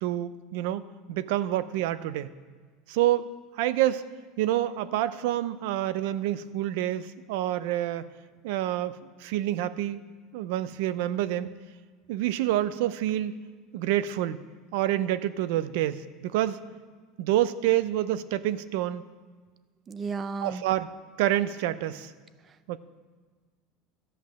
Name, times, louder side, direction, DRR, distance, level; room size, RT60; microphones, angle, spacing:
voice 1, 0.0-0.8 1.1-2.3 2.9-4.0 4.4-8.0 8.4-10.0 10.3-11.5 12.1-13.4 13.7-14.4 14.7-16.6 17.2-19.0 20.4-20.9 21.2-22.1 22.7-22.8, right 13 dB, 75° right, 15 dB, 0.5 m, -27 dB
voice 2, 19.9-20.6, right 4 dB, 25° right, 14 dB, 0.5 m, -33 dB
13.5 x 5.5 x 7.6 m, 1.5 s
supercardioid pair, 155°, 0 cm